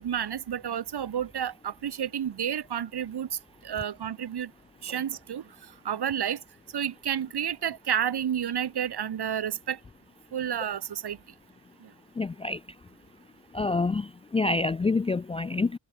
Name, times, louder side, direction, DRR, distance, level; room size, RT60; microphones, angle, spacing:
voice 1, 0.0-3.3 3.6-4.5 4.8-5.4 5.9-6.4 6.7-9.8 10.3-11.2, right 9 dB, 55° right, 1.9 m, -30 dB
voice 2, 12.2-12.6 13.5-14.1 14.3-15.7, left 3 dB, 15° left, 0.4 m, -26 dB
supercardioid pair, 60°, 48 cm